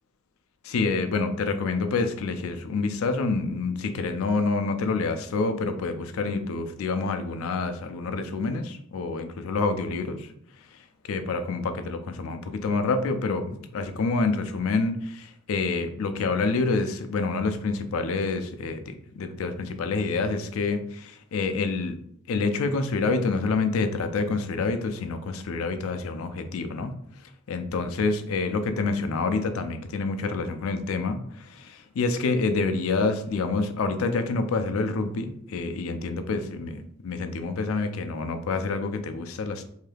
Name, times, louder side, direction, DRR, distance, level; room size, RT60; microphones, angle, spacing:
voice 1, 0.6-10.3 10.7-10.8 11.0-22.0 22.3-26.9 27.2-39.6, left 3 dB, 75° left, 8 dB, 0.4 m, -27 dB
2.7 x 2.3 x 3.3 m, 0.68 s
head